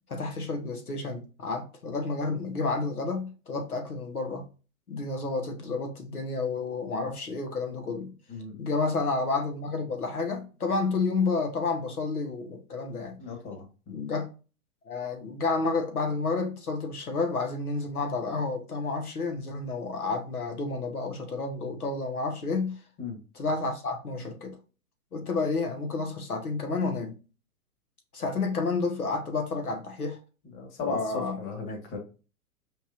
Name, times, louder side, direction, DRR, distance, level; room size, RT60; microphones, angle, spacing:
voice 1, 0.1-4.5 4.9-8.1 8.6-13.2 13.9-14.3 14.9-22.8 23.3-24.6 25.1-27.1 28.1-30.2 30.8-31.4, left 3 dB, 85° left, 1.4 m, -30 dB
voice 2, 8.3-8.6 13.2-14.0 23.0-23.2 30.5-32.0, left 4 dB, 30° left, 1.5 m, -36 dB
5.2 x 3.2 x 2.5 m
figure-of-eight pair, 110°, 43 cm